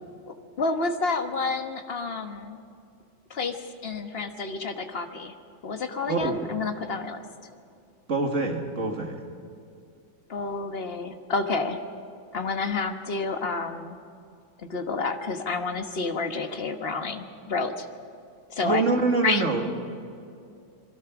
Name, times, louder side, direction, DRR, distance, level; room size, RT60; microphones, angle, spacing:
voice 1, 0.3-2.6 3.3-5.3 5.6-7.2 10.3-11.8 12.3-13.9 14.6-17.9 18.5-18.8 19.2-19.4, left 3 dB, 35° left, 6 dB, 1.3 m, -29 dB
voice 2, 6.1-6.4 8.1-9.2 18.6-19.7, right 3 dB, 40° right, 3 dB, 2.3 m, -25 dB
27.0 x 21.5 x 6.0 m, 2.5 s
omnidirectional pair, 2.1 m